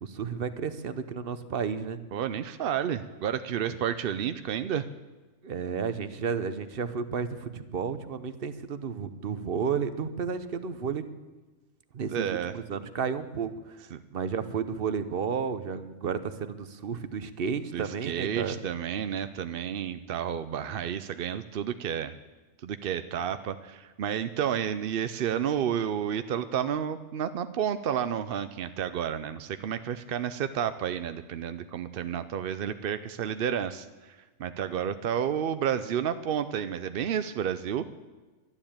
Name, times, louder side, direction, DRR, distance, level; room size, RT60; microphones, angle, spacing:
voice 1, 0.0-2.0 3.7-3.8 5.4-11.0 11.9-13.9 14.1-18.6, right 6 dB, 45° right, 12 dB, 0.9 m, -32 dB
voice 2, 2.1-4.9 12.1-12.5 13.9-14.0 17.7-22.1 22.6-37.9, right 9 dB, 65° right, 11 dB, 0.5 m, -31 dB
12.0 x 11.0 x 8.7 m, 1.2 s
omnidirectional pair, 1.6 m